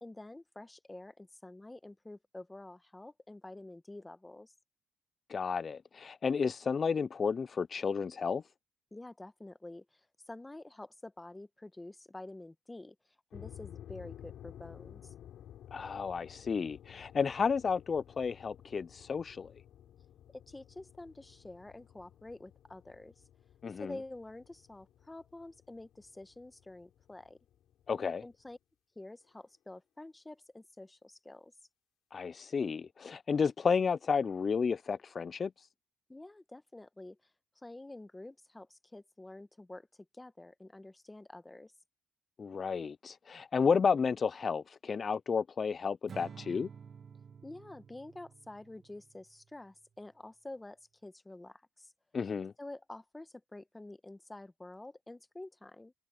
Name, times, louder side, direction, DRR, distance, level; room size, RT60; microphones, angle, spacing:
voice 1, 0.0-4.5 8.9-12.9 13.3-15.1 20.3-23.1 23.8-27.4 28.2-28.6 29.0-31.5 36.1-37.2 37.6-39.9 40.1-41.7 47.4-51.9 52.6-55.9, left 2 dB, 15° left, 1.1 m, -48 dB
voice 2, 5.3-8.4 15.7-19.5 23.6-23.9 27.9-28.2 32.1-35.7 42.4-46.7 52.1-52.5, left 5 dB, 40° left, 0.3 m, -32 dB
sound 1, 13.3-28.5, left 11 dB, 75° left, 7.5 m, -54 dB
Acoustic guitar / Strum, 46.1-49.4, right 6 dB, 50° right, 0.8 m, -51 dB
cardioid pair, 90°, 0 cm